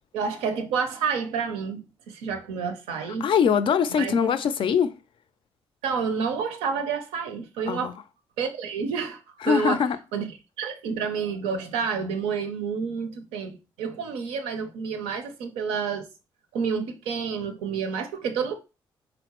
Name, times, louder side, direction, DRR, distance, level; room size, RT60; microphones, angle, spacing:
voice 1, 0.1-3.3 3.9-4.2 5.8-7.9 8.4-9.2 9.5-9.8 10.1-10.3 10.6-16.1 16.5-18.5, right 6 dB, 90° right, 0.5 m, -29 dB
voice 2, 3.2-4.9 7.7-7.9 9.4-10.0, left 7 dB, 60° left, 0.4 m, -22 dB
3.7 x 2.0 x 2.9 m
supercardioid pair, 55°, 10 cm